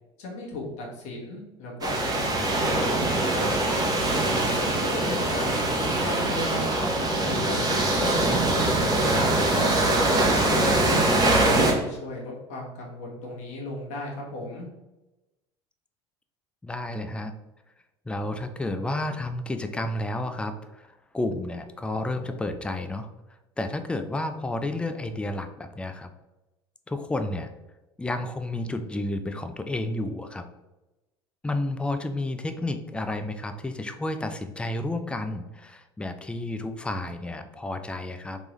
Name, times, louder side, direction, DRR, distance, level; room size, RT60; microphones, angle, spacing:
voice 1, 0.2-3.5 4.2-6.9 7.2-9.8 10.3-11.5 11.8-14.7, left 1 dB, 55° left, -2 dB, 1.4 m, -36 dB
sound 1, 1.8-11.7, right 2 dB, 30° right, 1.0 m, -23 dB
voice 2, 16.6-17.3 18.1-23.1 23.6-26.1 26.9-27.5 28.0-30.4 31.4-38.4, left 2 dB, 5° left, 8 dB, 0.4 m, -31 dB
3.4 x 3.2 x 3.0 m, 1.0 s
hypercardioid pair, 75°, 14 cm